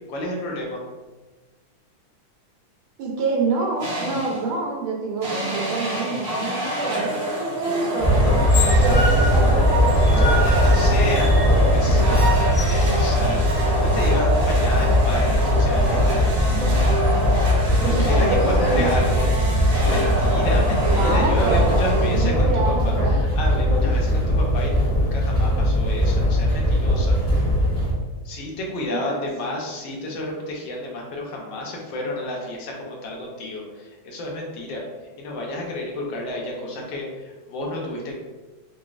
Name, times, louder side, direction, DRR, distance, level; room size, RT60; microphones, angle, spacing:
voice 1, 0.1-0.8 10.6-16.3 17.8-19.3 19.9-27.2 28.2-38.2, left 1 dB, 75° left, -1 dB, 1.3 m, -30 dB
voice 2, 3.0-8.3 8.5-12.2 17.8-19.0 20.6-23.1 28.9-29.3, right 3 dB, 80° right, -1 dB, 1.5 m, -27 dB
sound 1, 3.8-4.5 5.2-22.6, right 1 dB, 55° right, 0.7 m, -26 dB
sound 2, 8.0-27.9, equal, 55° left, 0.4 m, -19 dB
sound 3, 15.4-19.4, equal, 30° right, 0.9 m, -39 dB
3.9 x 2.3 x 2.3 m, 1.3 s
omnidirectional pair, 2.2 m